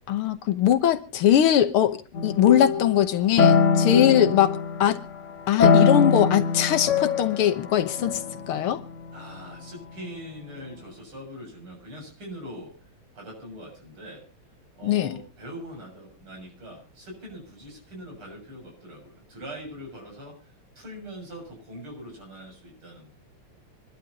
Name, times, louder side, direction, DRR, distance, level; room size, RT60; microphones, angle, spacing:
voice 1, 0.1-5.0 5.5-8.2 8.5-8.8 14.8-15.2, left 10 dB, 85° left, 2.0 m, -21 dB
sound 1, 2.1-5.1 5.6-9.5, left 5 dB, 55° left, 0.8 m, -23 dB
voice 2, 9.1-12.7 13.1-14.2 14.8-23.1, equal, 80° right, 8.4 m, -42 dB
26.5 x 12.0 x 2.9 m
omnidirectional pair, 2.3 m